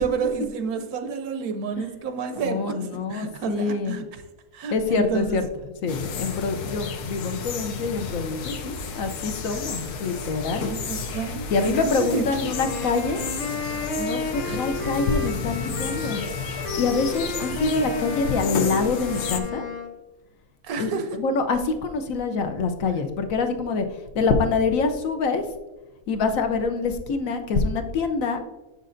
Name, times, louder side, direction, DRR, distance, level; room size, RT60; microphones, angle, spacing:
voice 1, 0.0-4.0 4.5-5.4 10.6-12.5 14.4-14.6 20.6-21.2, right 5 dB, 75° right, 7 dB, 1.1 m, -29 dB
voice 2, 2.4-4.0 4.7-5.4 5.8-10.7 11.5-13.2 14.0-16.3 16.6-19.7 20.8-20.9 21.2-25.5 26.1-28.4, left 4 dB, 70° left, 7 dB, 1.0 m, -25 dB
sound 1, 5.9-19.4, left 5 dB, 85° left, 1.3 m, -32 dB
sound 2, 12.4-19.9, left 3 dB, 40° left, 0.6 m, -32 dB
6.6 x 6.5 x 2.5 m, 1.1 s
omnidirectional pair, 1.6 m